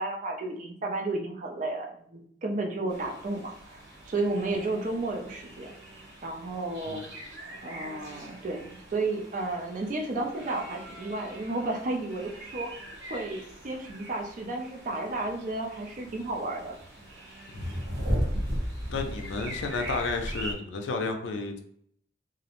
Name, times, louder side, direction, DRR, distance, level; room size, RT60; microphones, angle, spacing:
voice 1, 0.0-3.8 4.1-5.7 6.2-7.1 7.6-12.7 13.1-16.7, right 2 dB, 40° right, 1 dB, 0.4 m, -32 dB
sound 1, 2.9-20.5, equal, 55° right, 1.0 m, -38 dB
voice 2, 18.9-21.6, left 3 dB, 65° left, 5 dB, 0.4 m, -32 dB
2.4 x 2.0 x 2.9 m, 0.66 s
head